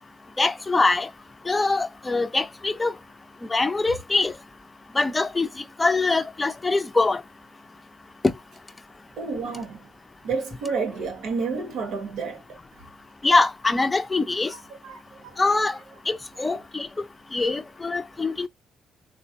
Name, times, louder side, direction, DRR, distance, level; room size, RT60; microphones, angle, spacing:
voice 1, 0.4-1.1 1.5-2.9 3.5-4.4 4.9-7.2 8.2-8.3 13.2-14.5 15.4-15.8 16.1-17.0 17.3-18.5, left 3 dB, 20° left, 0.5 m, -23 dB
voice 2, 9.2-9.9 10.2-12.9 14.5-15.4 16.4-16.6, right 4 dB, 80° right, 1.0 m, -31 dB
3.8 x 2.1 x 2.7 m
cardioid pair, 90°, 0 cm